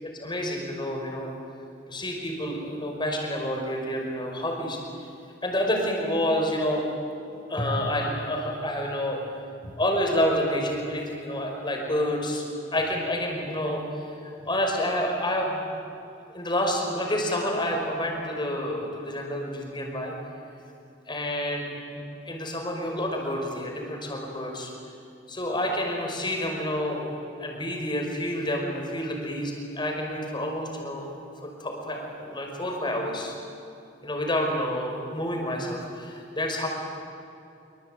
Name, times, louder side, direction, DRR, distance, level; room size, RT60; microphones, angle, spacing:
voice 1, 0.0-1.3 1.9-5.1 5.4-6.8 7.5-9.2 9.6-12.4 12.7-13.8 14.2-15.6 16.3-20.1 21.1-24.7 25.3-33.3 34.0-36.7, left 1 dB, 25° left, 1 dB, 5.4 m, -29 dB
26.0 x 25.0 x 9.3 m, 2.7 s
head